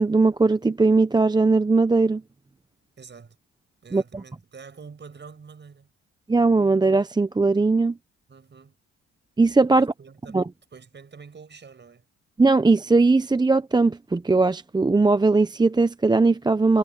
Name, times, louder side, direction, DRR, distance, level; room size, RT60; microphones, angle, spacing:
voice 1, 0.0-2.2 3.9-4.0 6.3-8.0 9.4-9.9 10.3-10.4 12.4-16.8, right 3 dB, 15° right, 0.7 m, -19 dB
voice 2, 3.0-3.4 3.8-5.9 8.3-8.8 9.7-10.4 10.7-12.1, right 5 dB, 35° right, 5.9 m, -46 dB
cardioid pair, 90°, 30 cm